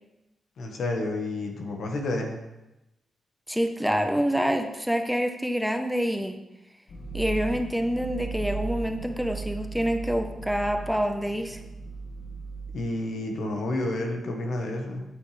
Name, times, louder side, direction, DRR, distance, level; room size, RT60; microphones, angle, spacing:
voice 1, 0.6-2.4 12.7-15.0, left 2 dB, 75° left, 2 dB, 1.5 m, -30 dB
voice 2, 3.5-6.4 7.1-11.6, equal, ahead, 5 dB, 1.0 m, -27 dB
sound 1, 6.9-12.7, right 4 dB, 60° left, 1.5 m, -36 dB
8.9 x 8.2 x 3.4 m, 0.97 s
supercardioid pair, 55°, 0 cm